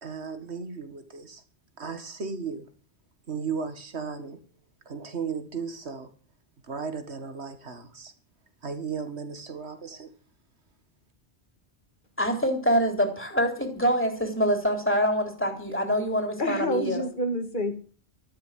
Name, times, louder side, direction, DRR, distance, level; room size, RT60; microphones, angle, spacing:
voice 1, 0.0-1.4 1.8-2.7 3.3-4.4 4.9-6.1 6.7-8.1 8.6-10.1, right 5 dB, 75° right, 9 dB, 2.1 m, -35 dB
voice 2, 12.2-17.1, equal, 10° left, 4 dB, 3.8 m, -25 dB
voice 3, 16.4-17.8, equal, 50° left, 7 dB, 2.3 m, -28 dB
13.5 x 11.5 x 7.6 m, 0.42 s
omnidirectional pair, 1.1 m